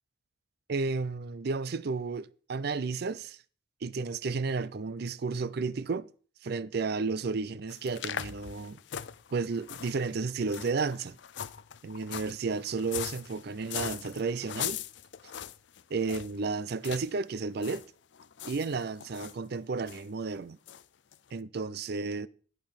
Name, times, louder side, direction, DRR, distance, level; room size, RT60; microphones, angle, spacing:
voice 1, 0.7-3.4 3.8-6.1 6.4-8.8 9.3-11.2 11.8-14.8 15.9-17.9 18.5-20.6 21.3-22.3, right 4 dB, 50° right, 0.4 m, -32 dB
sound 1, 7.7-16.4 16.8-17.1 17.3-17.9 18.1-19.3 19.9-20.0 20.7-20.8 21.1-21.2, left 9 dB, 60° left, 0.4 m, -40 dB
11.0 x 5.3 x 5.9 m
head